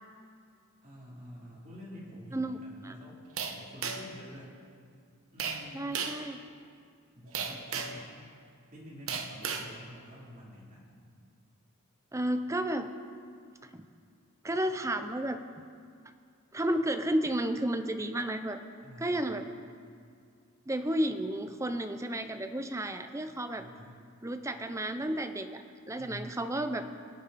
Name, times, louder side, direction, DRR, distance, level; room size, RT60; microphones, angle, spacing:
voice 1, 0.8-3.2 3.5-4.6 5.3-5.9 7.1-8.1 8.7-11.0 18.8-19.4 23.6-24.0 26.0-26.4, equal, 35° right, -5 dB, 3.3 m, -48 dB
voice 2, 2.3-2.9 5.7-6.4 12.1-12.9 13.6-13.8 14.4-15.4 16.5-18.6 19.0-19.5 20.7-23.7 24.2-26.9, right 1 dB, 15° right, 8 dB, 0.6 m, -32 dB
sound 1, 3.4-4.2 5.4-5.6 5.9-6.2 7.3-8.0 9.1-9.7, right 6 dB, 65° right, 1.1 m, -34 dB
23.5 x 8.2 x 4.2 m, 2.2 s
head